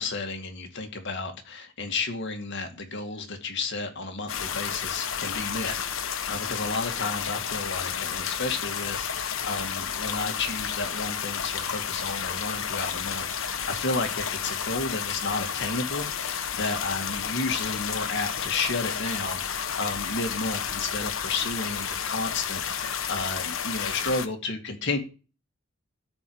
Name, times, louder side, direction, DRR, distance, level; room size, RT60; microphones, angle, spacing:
voice 1, 0.0-25.0, left 3 dB, 60° left, 5 dB, 2.3 m, -32 dB
sound 1, 4.3-24.3, left 7 dB, 80° left, 1.2 m, -31 dB
13.0 x 4.7 x 8.8 m, 0.34 s
head